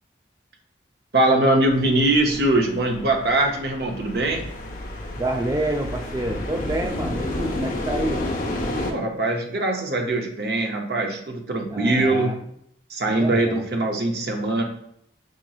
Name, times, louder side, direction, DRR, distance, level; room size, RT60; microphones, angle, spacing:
voice 1, 1.1-4.5 8.9-12.5 12.9-14.6, right 2 dB, 60° right, 2 dB, 0.6 m, -22 dB
sound 1, 1.6-8.9, left 1 dB, 45° left, 0.5 m, -31 dB
voice 2, 5.2-8.2 11.7-12.4 13.1-13.7, right 1 dB, 20° right, 4 dB, 0.3 m, -28 dB
4.9 x 3.0 x 2.3 m, 0.71 s
head